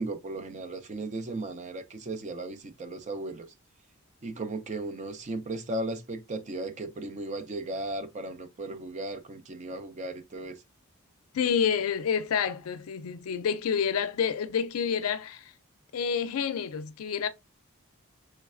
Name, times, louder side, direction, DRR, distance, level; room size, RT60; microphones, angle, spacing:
voice 1, 0.0-3.5 4.2-10.6, right 2 dB, 35° right, 0.4 m, -36 dB
voice 2, 11.3-15.5 15.9-17.3, left 7 dB, 85° left, 0.4 m, -28 dB
3.2 x 3.1 x 2.4 m
head